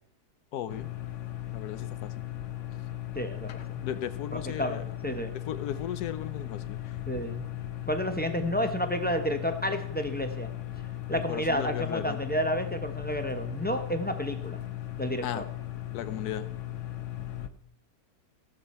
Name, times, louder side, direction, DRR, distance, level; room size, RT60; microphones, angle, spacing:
voice 1, 0.5-0.9 1.5-2.3 3.8-4.8 5.3-6.8 11.1-12.2 15.2-15.5 15.9-16.5, left 10 dB, 80° left, 13 dB, 1.3 m, -36 dB
sound 1, 0.7-17.5, left 13 dB, 60° left, 1.0 m, -37 dB
voice 2, 3.1-3.8 4.3-5.3 7.1-7.4 7.9-10.5 11.1-14.6 15.0-15.4, equal, 10° left, 6 dB, 0.5 m, -31 dB
16.0 x 7.5 x 4.3 m, 0.69 s
omnidirectional pair, 1.7 m